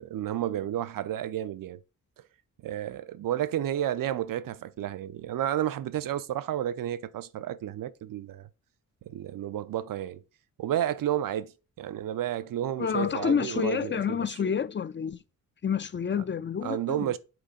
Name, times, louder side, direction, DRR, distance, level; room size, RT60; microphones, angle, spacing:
voice 1, 0.0-1.8 2.6-8.5 9.1-10.2 10.6-11.5 11.8-14.3 16.6-17.2, right 11 dB, 85° right, 0.6 m, -31 dB
voice 2, 12.8-15.2 15.6-17.1, left 7 dB, 35° left, 0.5 m, -29 dB
7.8 x 3.8 x 5.1 m
cardioid pair, 95°, 33 cm